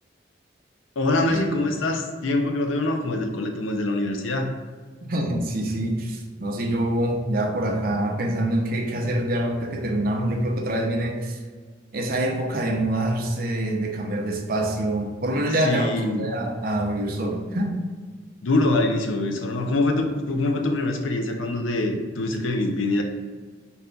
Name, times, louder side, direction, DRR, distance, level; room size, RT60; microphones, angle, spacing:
voice 1, 1.0-4.5 15.6-16.4 18.4-23.0, left 2 dB, 85° left, 3 dB, 0.5 m, -24 dB
voice 2, 5.0-11.4 11.9-17.8, right 1 dB, 45° right, 1 dB, 0.6 m, -25 dB
4.1 x 2.3 x 3.7 m, 1.5 s
head